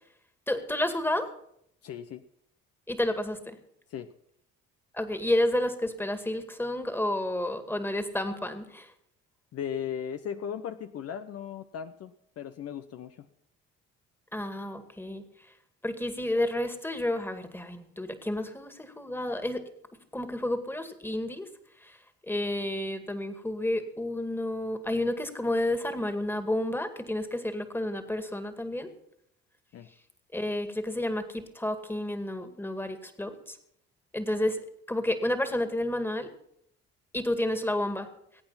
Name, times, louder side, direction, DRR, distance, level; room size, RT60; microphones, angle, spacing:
voice 1, 0.5-1.3 2.9-3.6 4.9-8.9 14.3-15.2 15.8-19.6 20.1-21.5 22.3-28.9 30.3-33.6 34.1-34.6 34.9-36.3 37.1-38.1, left 1 dB, 5° left, 9 dB, 2.1 m, -30 dB
voice 2, 1.8-2.2 3.9-4.1 9.5-13.3 29.7-29.9, left 8 dB, 55° left, 9 dB, 0.8 m, -37 dB
21.5 x 8.7 x 5.6 m, 0.73 s
supercardioid pair, 70°, 30 cm